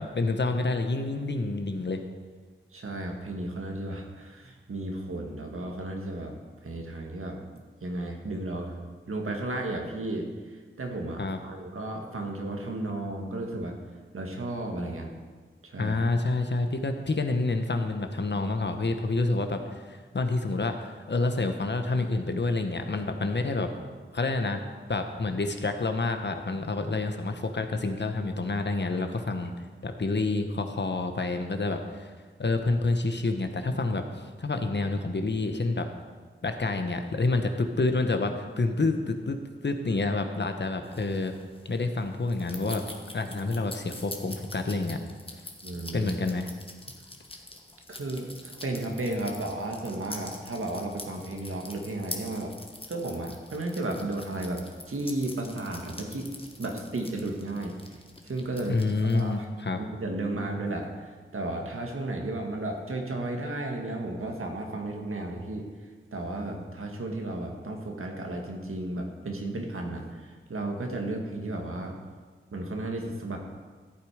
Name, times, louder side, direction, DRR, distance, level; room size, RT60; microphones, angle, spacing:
voice 1, 0.0-2.0 11.2-11.4 15.8-23.7 24.1-24.6 24.9-29.5 29.8-32.1 32.4-34.0 34.4-35.9 36.4-41.3 41.6-42.8 43.1-45.0 45.9-46.5 58.7-59.8, left 3 dB, 55° left, 6 dB, 1.2 m, -28 dB
voice 2, 2.7-6.3 6.6-7.4 7.8-8.8 9.1-13.8 14.1-15.1 15.6-16.0 45.6-46.1 47.9-52.5 52.9-54.6 54.9-56.3 56.6-57.7 58.2-59.5 59.8-65.6 66.1-72.0 72.5-73.4, right 2 dB, 80° right, 2 dB, 1.9 m, -34 dB
sound 1, 40.8-59.4, left 2 dB, 25° left, 1.5 m, -45 dB
14.5 x 8.8 x 5.1 m, 1.5 s
wide cardioid pair, 80°, 21 cm